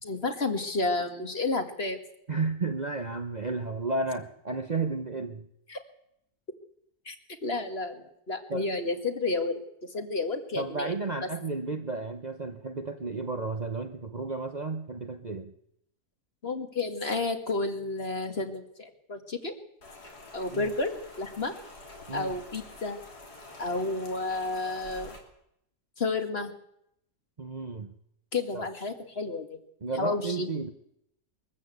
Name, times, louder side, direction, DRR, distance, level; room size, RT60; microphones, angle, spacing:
voice 1, 0.0-2.0 5.7-5.8 7.1-7.2 7.4-9.6 9.9-10.9 16.4-19.5 20.3-21.5 22.1-23.0 23.6-25.1 26.0-26.5 28.3-29.6 30.0-30.5, left 3 dB, 40° left, 6 dB, 2.1 m, -31 dB
voice 2, 2.3-5.5 8.5-8.7 10.6-15.5 20.5-20.7 22.1-22.4 27.4-27.9 28.5-28.6 29.8-30.7, right 3 dB, 30° right, 6 dB, 0.9 m, -33 dB
Rain, 19.8-25.2, left 2 dB, 80° left, 3.8 m, -47 dB
22.5 x 14.0 x 8.3 m, 0.77 s
omnidirectional pair, 1.7 m